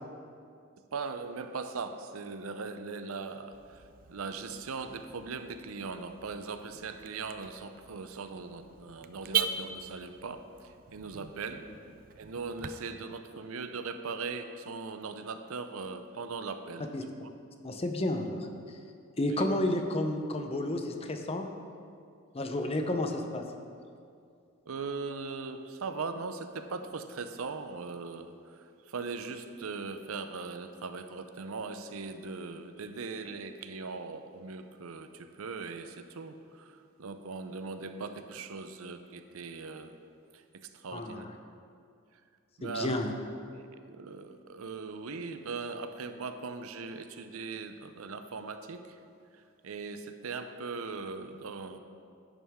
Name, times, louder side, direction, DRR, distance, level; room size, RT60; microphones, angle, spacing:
voice 1, 0.9-11.7 12.2-16.9 19.3-19.5 24.7-40.0 40.3-41.3 42.6-43.0 43.5-49.0 49.3-51.8, right 4 dB, 90° right, 8 dB, 0.6 m, -40 dB
Car / Alarm, 3.5-12.7, right 7 dB, 40° right, 0.4 m, -40 dB
voice 2, 17.6-18.8 19.2-21.5 22.3-23.5 40.9-41.2 42.6-43.1, left 1 dB, 30° left, 5 dB, 0.6 m, -31 dB
10.5 x 9.0 x 3.6 m, 2.4 s
head